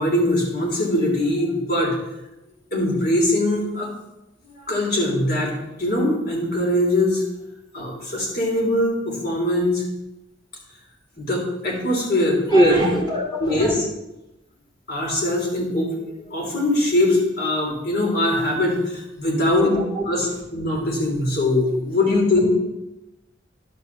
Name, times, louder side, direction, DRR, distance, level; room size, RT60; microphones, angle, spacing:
voice 1, 0.0-1.9 2.7-3.9 4.5-5.5 5.8-7.2 7.7-9.8 11.2-12.8 13.4-13.9 14.9-22.5, left 1 dB, 55° left, -1 dB, 3.0 m, -22 dB
voice 2, 12.5-13.7 19.6-20.0, equal, 30° left, -1 dB, 2.3 m, -20 dB
11.5 x 4.8 x 7.0 m, 0.96 s
head